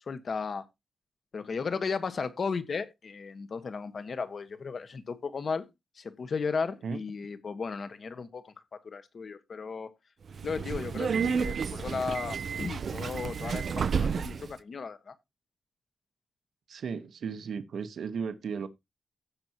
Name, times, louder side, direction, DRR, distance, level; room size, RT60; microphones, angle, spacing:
voice 1, 0.1-0.6 1.3-5.7 6.0-8.5 8.8-9.9 10.4-15.1, left 5 dB, 50° left, 1.4 m, -35 dB
Subway metro underground, 10.3-14.5, right 6 dB, 55° right, 0.5 m, -31 dB
voice 2, 16.7-18.7, right 6 dB, 70° right, 1.1 m, -35 dB
16.0 x 6.1 x 2.9 m
wide cardioid pair, 130°, 0 cm